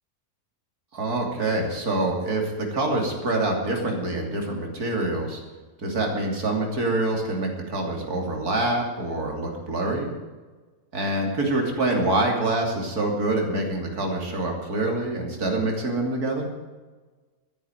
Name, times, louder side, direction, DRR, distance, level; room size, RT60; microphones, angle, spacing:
voice 1, 0.9-5.4 5.8-10.1 10.9-16.5, right 2 dB, 80° right, 1 dB, 3.5 m, -26 dB
13.0 x 11.0 x 9.1 m, 1.3 s
omnidirectional pair, 1.6 m